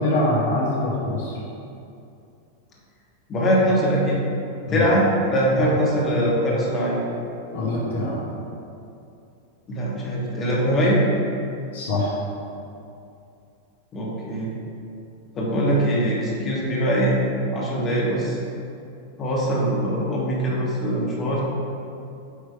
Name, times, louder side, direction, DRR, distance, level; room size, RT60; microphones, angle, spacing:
voice 1, 0.0-1.4 4.7-4.9 5.5-5.7 7.5-8.2 11.7-12.2, left 1 dB, 60° left, -5 dB, 1.2 m, -24 dB
voice 2, 3.3-4.3 4.7-7.1 9.7-11.0 13.9-14.5 15.3-17.2 17.5-18.4 19.2-21.4, equal, 25° left, -4 dB, 1.4 m, -22 dB
8.5 x 3.3 x 4.6 m, 2.6 s
figure-of-eight pair, 90°, 0 cm